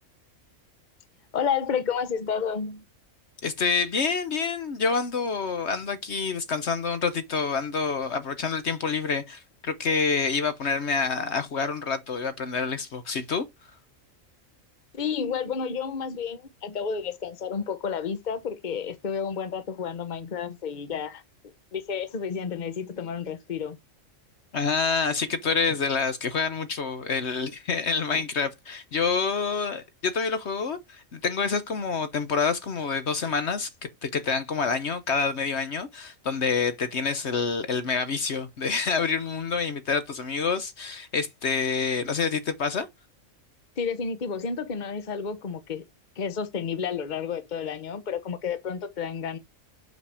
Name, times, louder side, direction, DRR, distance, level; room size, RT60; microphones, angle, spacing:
voice 1, 1.3-2.8 14.9-21.2 21.7-23.8 28.1-28.2 43.8-45.8 46.2-49.4, left 6 dB, 40° left, 1.1 m, -31 dB
voice 2, 3.4-13.4 24.5-33.7 34.0-42.9, left 5 dB, 60° left, 1.2 m, -27 dB
6.6 x 5.8 x 4.9 m
omnidirectional pair, 1.4 m